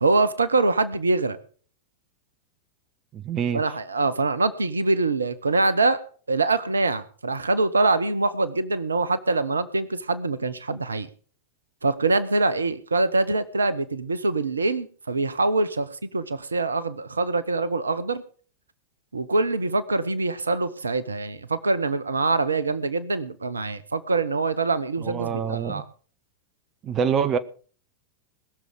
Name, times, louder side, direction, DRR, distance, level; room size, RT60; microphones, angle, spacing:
voice 1, 0.0-1.4 3.5-6.0 6.3-11.1 11.8-18.2 19.1-25.8, right 3 dB, 75° right, 15 dB, 1.0 m, -24 dB
voice 2, 3.1-3.6 25.0-25.8 26.8-27.4, right 7 dB, 30° right, 12 dB, 1.0 m, -25 dB
20.5 x 7.0 x 6.5 m, 0.43 s
figure-of-eight pair, 90°, 0 cm